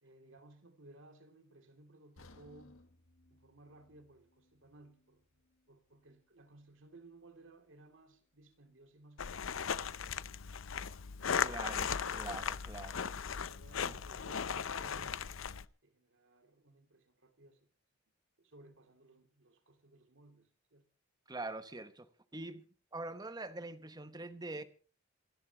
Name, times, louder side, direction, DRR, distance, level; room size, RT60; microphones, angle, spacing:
voice 1, 0.0-2.9 3.3-5.4 5.7-10.4 13.4-15.3 15.8-17.7 18.4-20.9, right 2 dB, 65° right, 2.6 m, -60 dB
sound 1, 2.2-6.2 6.6-6.7 7.3-7.4, left 2 dB, 85° left, 1.6 m, -63 dB
sound 2, 9.2-15.7, left 7 dB, 70° left, 0.6 m, -37 dB
voice 2, 11.4-13.0 13.8-14.0 21.3-24.6, right 2 dB, 20° right, 1.1 m, -44 dB
28.0 x 12.0 x 2.9 m
head